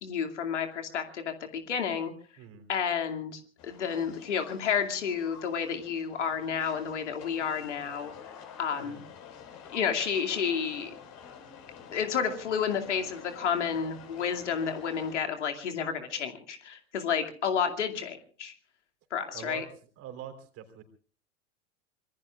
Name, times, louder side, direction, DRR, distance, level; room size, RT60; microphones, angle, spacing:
voice 1, 0.0-2.1 2.7-8.1 8.6-9.0 9.7-10.9 11.9-18.5 19.1-19.6, left 7 dB, 70° left, 5 dB, 2.5 m, -31 dB
sound 1, 3.6-15.2, left 7 dB, 45° left, 4.8 m, -49 dB
voice 2, 19.3-19.6 20.0-20.8, right 9 dB, 40° right, 8 dB, 3.8 m, -43 dB
26.0 x 22.5 x 2.4 m, 0.41 s
figure-of-eight pair, 85°, 37 cm